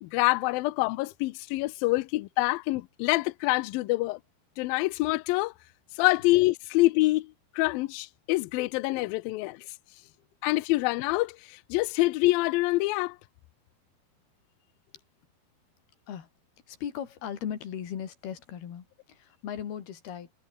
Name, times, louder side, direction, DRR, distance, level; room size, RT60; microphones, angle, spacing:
voice 1, 0.0-4.2 4.6-5.5 6.0-9.6 10.4-13.2, left 20 dB, 85° left, 2.1 m, -26 dB
voice 2, 16.7-20.3, left 9 dB, 65° left, 4.6 m, -38 dB
omnidirectional pair, 5.0 m